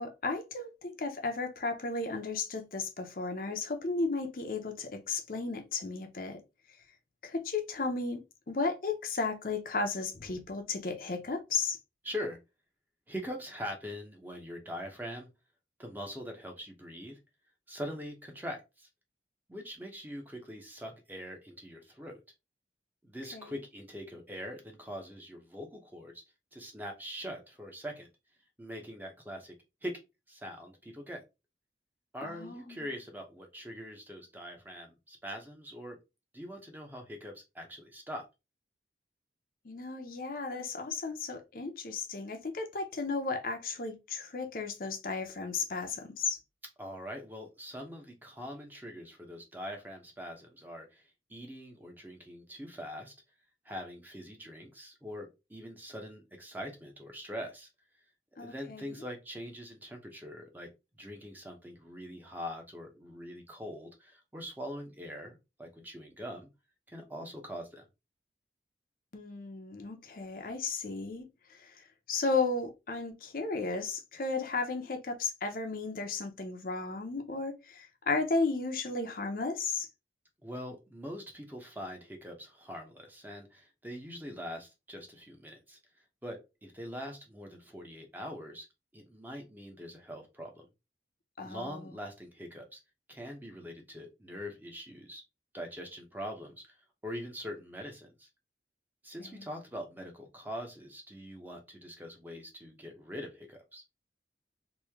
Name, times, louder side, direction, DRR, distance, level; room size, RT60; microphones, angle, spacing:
voice 1, 0.0-6.4 7.2-8.2 8.5-11.8 23.3-23.6 32.2-32.9 39.6-46.4 58.4-58.9 69.1-71.2 71.5-79.9 91.4-91.9 99.2-99.4, left 3 dB, 50° left, 0.6 m, -34 dB
voice 2, 12.0-12.4 13.1-15.3 15.8-17.2 17.7-18.9 19.5-22.2 23.0-26.2 26.5-28.1 28.6-29.5 29.8-30.0 30.3-31.2 32.1-36.0 36.3-38.3 46.8-53.1 53.6-57.7 58.4-60.7 61.0-66.5 66.9-67.8 80.4-85.8 86.2-88.7 88.9-90.7 91.4-92.8 93.1-95.2 95.5-98.3 99.0-103.8, equal, 10° right, 0.7 m, -43 dB
3.1 x 2.7 x 3.4 m
head